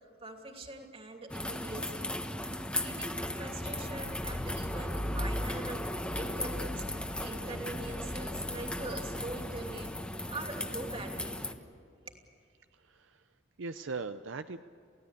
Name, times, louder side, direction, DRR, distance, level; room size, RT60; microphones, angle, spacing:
voice 1, 0.2-2.1 2.4-9.9 10.3-11.4 12.1-12.2, right 2 dB, 30° right, 3 dB, 2.8 m, -43 dB
sound 1, 1.3-11.5, left 1 dB, 5° left, 1.2 m, -36 dB
voice 2, 12.7-13.3 13.6-14.6, right 4 dB, 70° right, 9 dB, 0.7 m, -40 dB
29.0 x 16.5 x 8.4 m, 2.4 s
head